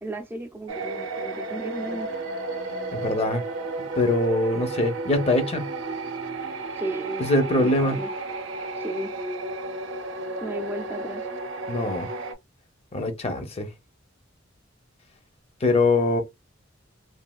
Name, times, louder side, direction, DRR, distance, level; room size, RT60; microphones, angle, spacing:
voice 1, 0.0-2.1 6.4-7.3 7.5-8.1 8.7-9.1 10.4-11.3, right 1 dB, 10° right, 0.3 m, -34 dB
sound 1, 0.7-12.3, right 3 dB, 70° right, 0.6 m, -33 dB
voice 2, 2.9-3.4 4.0-5.7 7.2-8.0 11.7-12.1 12.9-13.7 15.6-16.2, left 2 dB, 30° left, 0.6 m, -23 dB
3.2 x 2.3 x 2.3 m
head